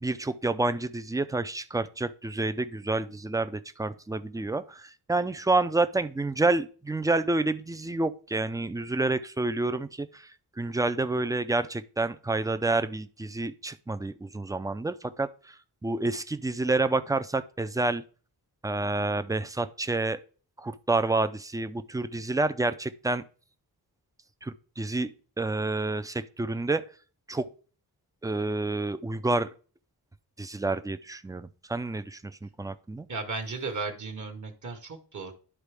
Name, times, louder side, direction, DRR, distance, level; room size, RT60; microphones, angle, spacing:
voice 1, 0.0-10.3 10.6-15.3 15.8-18.0 18.6-20.2 20.6-23.2 24.4-25.1 25.4-26.8 27.3-27.5 28.2-29.5 30.4-33.1, right 2 dB, 10° right, 11 dB, 0.4 m, -29 dB
voice 2, 33.1-35.3, right 4 dB, 50° right, 4 dB, 1.2 m, -35 dB
11.5 x 4.1 x 3.4 m, 0.39 s
wide cardioid pair, 120°, 38 cm